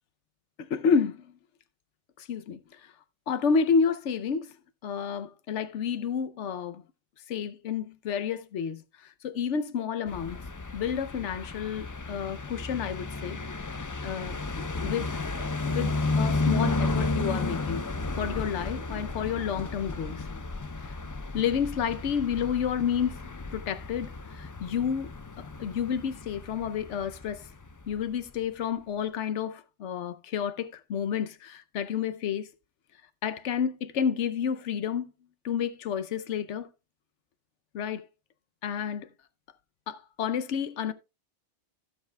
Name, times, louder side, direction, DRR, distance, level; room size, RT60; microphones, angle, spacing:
voice 1, 0.6-1.3 2.2-2.9 3.3-4.5 4.8-6.8 7.3-10.4 10.7-13.4 14.0-15.1 15.4-17.9 18.2-20.3 21.3-25.1 25.4-27.5 27.9-32.5 33.2-35.1 35.4-36.7 37.7-38.1 38.6-39.1 39.9-40.9, left 7 dB, 85° left, 1.0 m, -30 dB
sound 1, 10.1-28.0, left 3 dB, 30° left, 0.4 m, -33 dB
16.0 x 7.3 x 2.2 m
omnidirectional pair, 1.2 m